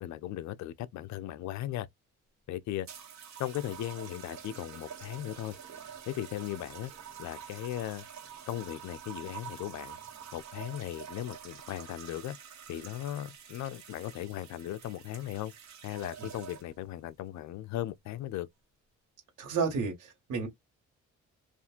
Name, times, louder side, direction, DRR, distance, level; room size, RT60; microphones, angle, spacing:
voice 1, 0.0-1.9 2.5-2.9 3.4-5.6 6.1-6.9 7.2-8.1 8.5-10.0 10.3-12.4 12.7-15.5 15.8-18.5, left 13 dB, 70° left, 0.5 m, -37 dB
sound 1, 2.8-16.9 17.7-18.1, right 8 dB, 65° right, 1.2 m, -47 dB
voice 2, 19.4-20.5, right 5 dB, 85° right, 1.3 m, -31 dB
2.6 x 2.5 x 2.4 m
cardioid pair, 90°, 30 cm